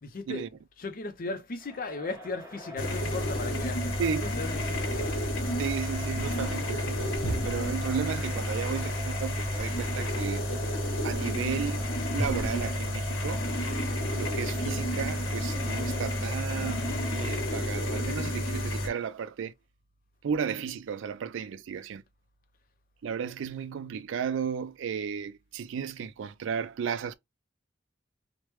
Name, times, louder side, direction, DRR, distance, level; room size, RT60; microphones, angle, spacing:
voice 1, 0.0-0.4 0.8-5.2, left 3 dB, 45° left, 0.5 m, -37 dB
Crowd, 1.6-17.8, left 2 dB, 20° right, 1.3 m, -44 dB
sound 1, 2.8-18.9, equal, 85° left, 0.9 m, -30 dB
voice 2, 4.0-4.3 5.6-10.4 11.0-11.8 12.1-13.5 14.1-19.5 20.2-22.0 23.0-27.2, right 7 dB, 70° right, 0.3 m, -34 dB
3.2 x 2.1 x 3.0 m
head